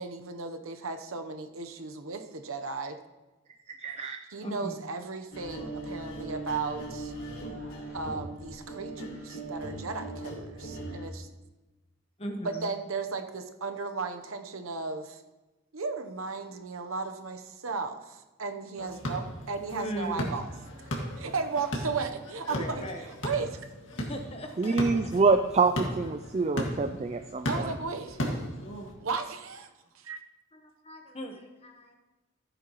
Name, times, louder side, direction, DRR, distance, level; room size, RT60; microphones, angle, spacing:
voice 1, 0.0-3.0 4.3-7.1 7.9-11.3 12.4-15.2 15.7-20.5 21.2-23.6 23.9-24.0 27.5-28.2 29.0-29.7 29.9-30.2, right 4 dB, 80° right, 7 dB, 0.8 m, -35 dB
voice 2, 3.7-4.2 24.6-27.7, right 4 dB, 30° right, 7 dB, 0.3 m, -26 dB
voice 3, 4.4-4.8 12.2-12.7 19.7-20.3 22.5-23.1 24.0-25.1 30.5-32.0, equal, 30° left, 4 dB, 1.1 m, -38 dB
sound 1, 5.3-11.1, right 1 dB, 85° left, 3.5 m, -39 dB
sound 2, 18.8-28.9, equal, 65° left, 1.9 m, -36 dB
14.5 x 9.3 x 3.0 m, 1.1 s
head